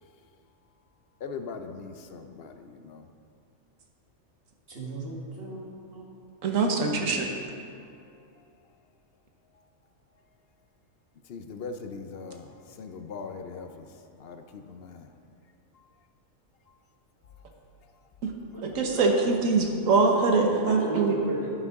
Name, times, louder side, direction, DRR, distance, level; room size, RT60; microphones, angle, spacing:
voice 1, 1.2-3.0 11.3-13.9 14.2-15.1, left 5 dB, 60° left, 7 dB, 0.7 m, -40 dB
voice 2, 4.7-6.1 18.5-18.6 18.9-19.0 20.7-21.5, right 1 dB, 50° right, -2 dB, 1.7 m, -35 dB
voice 3, 6.4-7.2 18.2-18.3 18.6-21.2, right 4 dB, 85° right, 2 dB, 1.4 m, -23 dB
10.5 x 9.2 x 3.6 m, 2.5 s
omnidirectional pair, 1.3 m